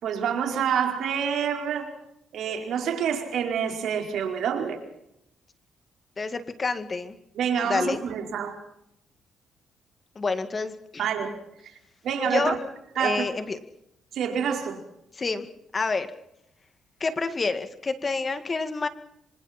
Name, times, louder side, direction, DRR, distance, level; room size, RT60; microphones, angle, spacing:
voice 1, 0.0-1.9 2.3-4.8 7.3-8.5 11.0-11.4 12.0-12.6 13.0-13.3 14.1-14.8, right 7 dB, 75° right, 3 dB, 4.5 m, -27 dB
voice 2, 6.2-7.2 7.7-8.0 10.2-11.1 12.3-12.6 13.0-13.6 15.2-15.5 15.7-16.1 17.0-18.9, left 3 dB, 35° left, 10 dB, 2.1 m, -28 dB
26.0 x 26.0 x 4.4 m, 0.80 s
cardioid pair, 90°, 0 cm